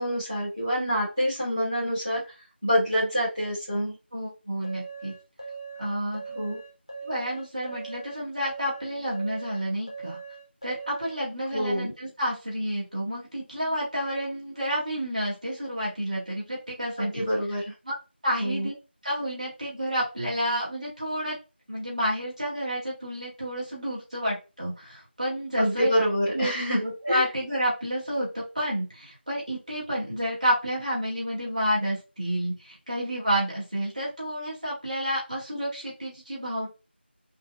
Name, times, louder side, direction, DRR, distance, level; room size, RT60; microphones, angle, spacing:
voice 1, 0.0-2.2 2.6-3.9 6.3-6.6 11.5-11.9 17.0-17.6 18.4-18.7 25.6-26.8 27.1-27.2, equal, ahead, -19 dB, 0.6 m, -26 dB
voice 2, 4.1-5.1 5.8-6.2 7.0-10.2 10.6-17.2 17.8-17.9 18.2-18.7 19.0-21.4 21.7-25.9 26.3-26.5 26.8-36.7, equal, 40° right, -5 dB, 1.8 m, -30 dB
sound 1, 4.6-11.2, right 5 dB, 30° left, 0.8 m, -40 dB
5.2 x 2.3 x 2.3 m, 0.29 s
figure-of-eight pair, 175°, 6 cm